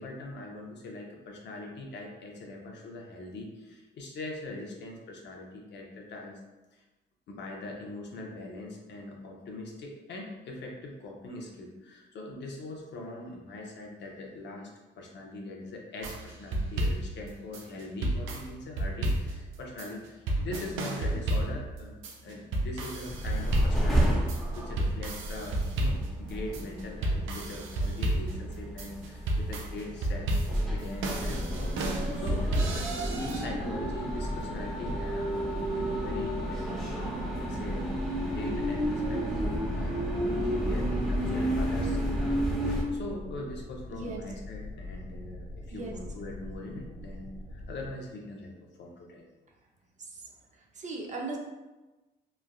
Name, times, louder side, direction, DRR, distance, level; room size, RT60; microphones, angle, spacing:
voice 1, 0.0-6.4 6.7-6.8 7.3-14.7 15.0-24.3 24.5-32.4 33.2-49.2, left 2 dB, 60° left, 0 dB, 0.6 m, -42 dB
sound 1, 16.0-33.4, right 1 dB, 85° right, 0.5 m, -31 dB
sound 2, 23.0-42.8, equal, ahead, 0.8 m, -31 dB
sound 3, 38.4-47.9, left 1 dB, 35° left, 1.2 m, -43 dB
voice 2, 43.9-44.2 45.7-46.0 50.0-50.2 50.7-51.4, right 3 dB, 40° right, 0 dB, 0.5 m, -37 dB
3.1 x 2.4 x 2.2 m, 1.1 s
cardioid pair, 90°, 20 cm